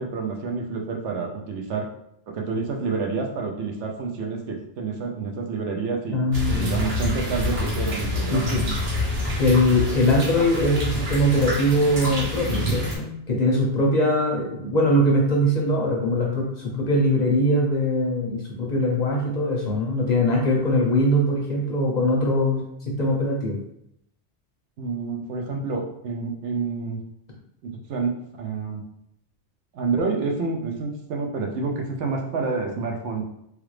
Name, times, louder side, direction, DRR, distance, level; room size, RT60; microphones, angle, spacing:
voice 1, 0.0-1.9 2.3-6.2 6.5-8.7 24.8-27.0 27.6-28.8 29.7-33.2, right 4 dB, 90° right, 2 dB, 0.9 m, -28 dB
voice 2, 6.1-6.8 8.3-8.8 9.4-23.6, left 1 dB, 50° left, -2 dB, 0.6 m, -22 dB
sound 1, 6.3-13.0, left 1 dB, 60° right, 1.1 m, -27 dB
3.2 x 2.3 x 3.1 m, 0.76 s
omnidirectional pair, 1.2 m